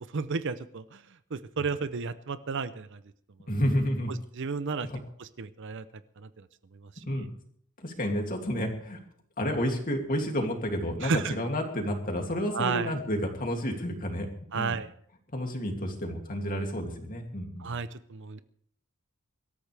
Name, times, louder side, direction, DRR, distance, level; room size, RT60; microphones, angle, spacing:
voice 1, 0.1-1.0 1.3-3.0 4.1-4.9 5.2-5.8 6.2-6.3 11.0-11.3 12.5-12.9 14.5-14.9 17.6-18.4, right 5 dB, 55° right, 14 dB, 0.6 m, -32 dB
voice 2, 3.5-4.2 4.8-5.0 7.0-7.3 7.8-9.0 9.4-14.3 14.5-14.8 15.3-17.7, equal, 40° left, 2 dB, 2.7 m, -30 dB
24.0 x 13.5 x 3.4 m, 0.63 s
head